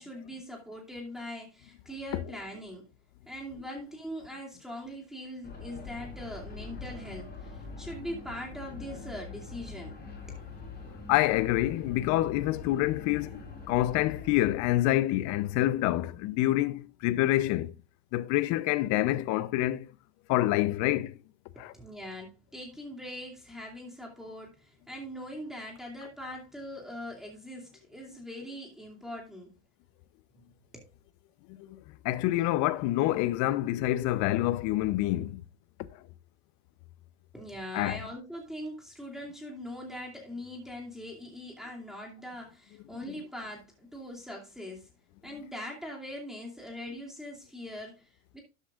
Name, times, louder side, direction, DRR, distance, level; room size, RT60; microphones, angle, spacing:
voice 1, 0.0-2.9 3.3-10.0 10.3-10.4 21.5-29.5 30.7-30.9 37.3-44.9 45.2-48.4, equal, ahead, 2.5 m, -42 dB
sound 1, 5.4-14.5, left 4 dB, 25° left, 3.9 m, -43 dB
voice 2, 11.1-13.4 13.7-17.7 18.1-19.9 20.3-21.2 21.6-21.7 31.5-31.8 32.0-35.4 37.7-38.0, left 16 dB, 50° left, 0.7 m, -27 dB
12.0 x 8.2 x 2.5 m
supercardioid pair, 115°, 37 cm